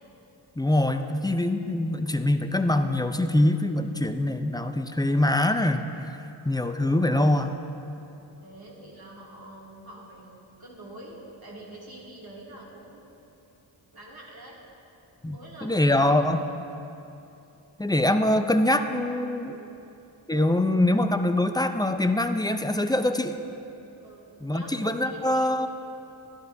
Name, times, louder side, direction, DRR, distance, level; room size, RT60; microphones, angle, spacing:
voice 1, 0.6-7.6 15.2-16.5 17.8-19.6 20.3-23.4 24.4-25.7, left 1 dB, 10° left, 7 dB, 0.4 m, -24 dB
voice 2, 8.4-13.1 13.9-14.6 15.3-16.1 19.4-19.7 24.0-25.5, right 1 dB, 50° right, -4 dB, 2.5 m, -45 dB
14.0 x 11.0 x 2.6 m, 2.8 s
cardioid pair, 55°, 47 cm